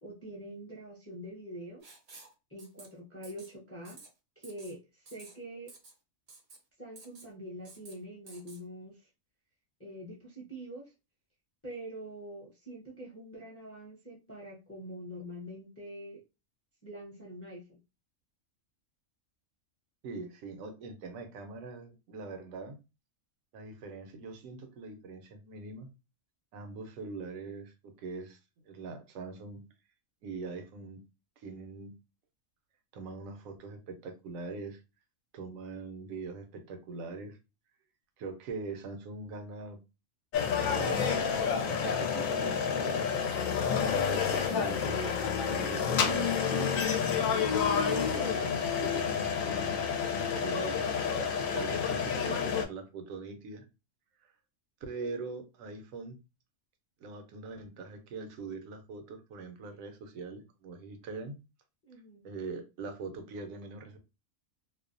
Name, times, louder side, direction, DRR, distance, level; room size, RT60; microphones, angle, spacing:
voice 1, 0.0-1.8 2.5-4.0 4.4-5.7 6.8-9.1 9.8-10.9 11.6-16.2 16.8-17.8 61.8-62.3, right 1 dB, 15° left, -2 dB, 0.5 m, -45 dB
Writing, 1.8-2.3 2.6-2.9 3.2-3.5 3.8-4.1 4.4-4.7 5.1-5.3 5.7-5.9 6.3-6.6 7.0-7.3 7.6-7.9 8.3-8.6, right 3 dB, 55° right, 0.4 m, -52 dB
voice 2, 20.0-22.8 23.5-25.9 26.5-28.4 28.6-29.6 30.2-31.0 31.4-31.9 32.9-34.8 35.3-37.4 38.2-39.8 40.7-41.2 41.6-43.2 44.1-45.1 45.5-46.8 47.5-53.6 54.2-54.3 54.8-56.2 57.0-61.3 62.2-64.0, right 4 dB, 85° right, 6 dB, 1.0 m, -42 dB
sound 1, 40.3-52.6, left 6 dB, 80° left, 1.0 m, -29 dB
2.5 x 2.1 x 2.5 m, 0.28 s
omnidirectional pair, 1.4 m